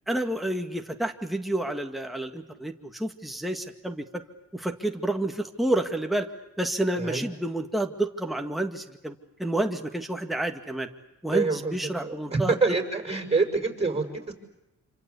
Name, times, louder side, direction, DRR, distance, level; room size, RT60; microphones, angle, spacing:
voice 1, 0.1-4.2 4.5-6.3 6.6-10.9 11.2-12.5, right 1 dB, ahead, 3 dB, 2.0 m, -29 dB
voice 2, 6.9-7.3 11.3-14.3, right 3 dB, 20° right, 4 dB, 6.3 m, -27 dB
27.0 x 26.0 x 8.3 m, 0.90 s
cardioid pair, 90°, 30 cm